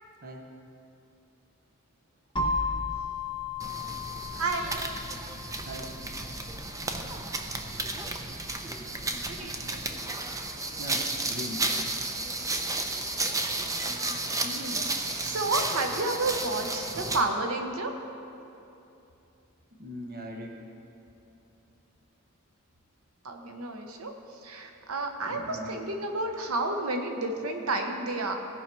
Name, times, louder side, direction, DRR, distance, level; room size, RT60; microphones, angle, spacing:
sound 1, 2.4-10.2, left 3 dB, 20° left, 1.1 m, -36 dB
sound 2, 3.6-17.3, right 2 dB, 15° right, 0.6 m, -33 dB
voice 1, 4.3-4.8 9.1-9.8 13.8-17.9 23.2-24.1 24.4-28.3, right 2 dB, 80° right, 4 dB, 0.9 m, -31 dB
voice 2, 10.8-11.7 19.8-20.5 25.3-25.8, equal, 45° right, 2 dB, 0.8 m, -40 dB
16.5 x 5.6 x 4.6 m, 2.8 s
head